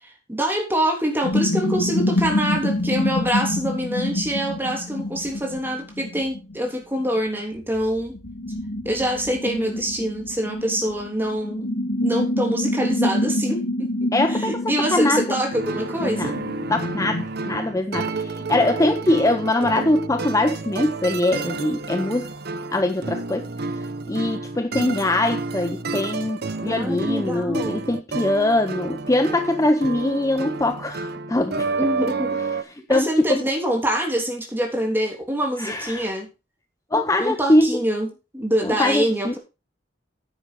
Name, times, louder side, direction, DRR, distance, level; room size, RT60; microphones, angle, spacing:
voice 1, 0.0-8.1 8.8-11.7 12.0-13.9 14.3-16.3 26.6-27.9 31.8-32.4 32.9-36.3 37.2-39.4, equal, 10° right, 3.1 m, -25 dB
sound 1, 1.2-6.7 7.0-17.2, left 1 dB, 85° left, 2.0 m, -27 dB
voice 2, 14.1-14.5 14.9-15.3 16.0-16.3 16.7-22.3 22.7-23.5 24.1-31.7 32.7-33.4 35.6-36.1 36.9-37.8 38.6-39.3, left 1 dB, 15° left, 0.7 m, -22 dB
sound 2, 15.5-32.6, right 3 dB, 60° right, 0.8 m, -30 dB
9.9 x 8.0 x 4.6 m
head